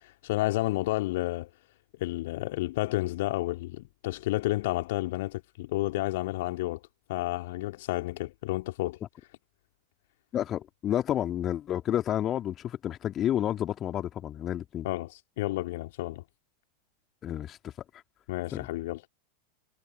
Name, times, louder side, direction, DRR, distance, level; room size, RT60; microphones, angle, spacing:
voice 1, 0.2-1.5 2.0-6.8 7.1-9.0 14.8-16.2 18.3-19.1, left 18 dB, 50° left, 2.2 m, -31 dB
voice 2, 10.3-14.9 17.2-17.7 18.5-18.7, left 11 dB, 30° left, 2.3 m, -30 dB
figure-of-eight pair, 90°, 0 cm